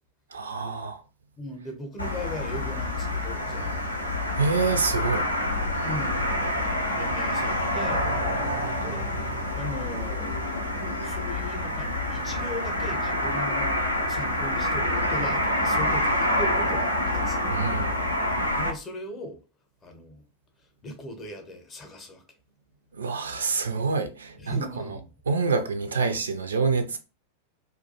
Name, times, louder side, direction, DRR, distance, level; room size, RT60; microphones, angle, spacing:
voice 1, 0.3-1.0 4.4-5.3 17.5-17.9 22.9-25.0 25.3-27.0, right 4 dB, 70° right, 0.3 m, -27 dB
voice 2, 1.4-3.9 5.8-8.1 8.7-10.5 11.0-13.8 14.1-17.4 18.6-19.4 19.8-20.2 20.8-22.2 24.4-25.1 25.9-26.0, left 1 dB, 25° left, 0.6 m, -38 dB
sound 1, 2.0-18.7, left 1 dB, 85° left, 0.5 m, -27 dB
2.3 x 2.2 x 2.7 m
figure-of-eight pair, 90°, 0 cm